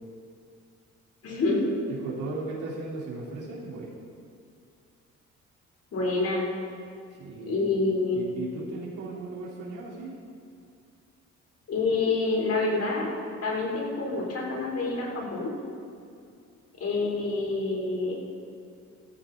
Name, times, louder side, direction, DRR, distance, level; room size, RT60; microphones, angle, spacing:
voice 1, 1.2-1.7 5.9-6.5 7.4-8.2 11.7-13.1 13.4-15.5 16.8-18.1, left 3 dB, 55° left, -2 dB, 3.5 m, -27 dB
voice 2, 1.9-3.9 7.1-7.7 8.1-10.2, right 3 dB, 80° right, -5 dB, 3.5 m, -37 dB
14.0 x 14.0 x 3.9 m, 2.4 s
cardioid pair, 90°, 30 cm